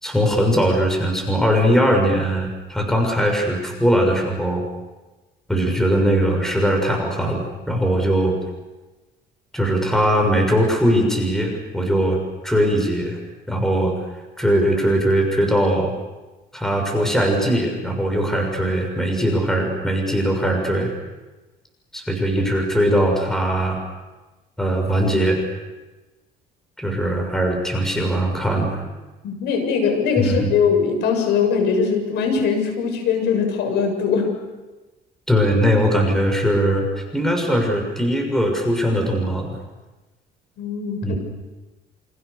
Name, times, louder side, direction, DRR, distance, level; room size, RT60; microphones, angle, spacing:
voice 1, 0.0-4.6 5.5-8.3 9.5-12.2 12.4-13.2 13.5-13.9 14.4-15.9 16.5-20.9 21.9-23.8 24.6-25.4 26.8-28.8 30.2-30.5 35.3-39.5 41.0-41.2, equal, 5° left, 2 dB, 6.8 m, -20 dB
voice 2, 29.2-34.3 40.6-41.2, left 6 dB, 85° left, 5 dB, 7.3 m, -21 dB
29.0 x 27.5 x 6.9 m, 1.2 s
cardioid pair, 110°, 17 cm